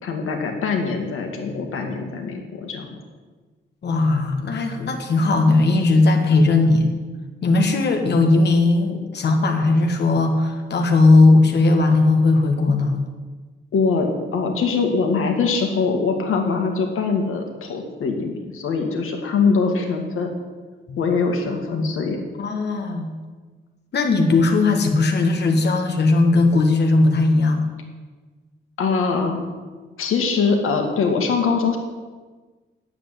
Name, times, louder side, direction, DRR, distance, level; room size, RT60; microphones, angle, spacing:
voice 1, 0.0-3.0 13.7-20.3 21.0-22.2 28.8-29.4 30.0-31.8, left 4 dB, 80° left, 3 dB, 2.1 m, -22 dB
voice 2, 3.8-6.9 7.4-13.0 20.9-21.0 21.7-21.8 22.4-23.2 23.9-27.7, left 3 dB, 55° left, 4 dB, 1.7 m, -17 dB
9.3 x 8.0 x 9.3 m, 1.4 s
cardioid pair, 125°, 21 cm